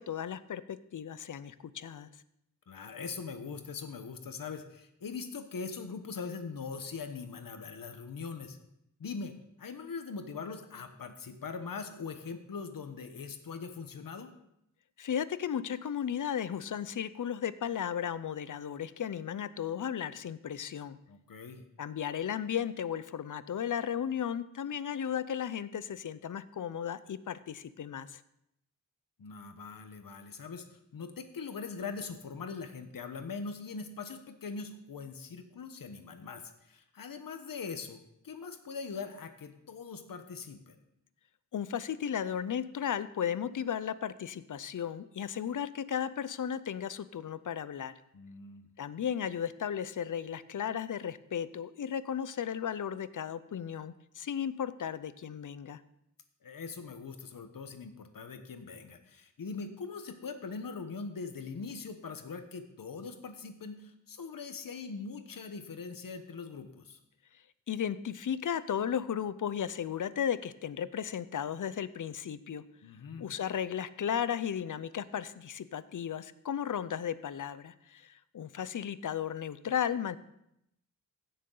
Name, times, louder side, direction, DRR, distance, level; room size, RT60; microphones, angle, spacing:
voice 1, 0.0-2.1 15.0-21.0 21.8-28.2 41.5-47.9 48.8-55.8 67.7-72.6 73.2-80.2, left 8 dB, 65° left, 15 dB, 0.5 m, -35 dB
voice 2, 2.7-8.6 9.0-9.3 9.6-14.3 21.1-21.6 29.2-40.8 48.1-48.7 56.4-67.0 72.8-73.3, left 5 dB, 85° left, 8 dB, 1.1 m, -42 dB
16.0 x 6.8 x 3.9 m, 0.80 s
wide cardioid pair, 100°, 33 cm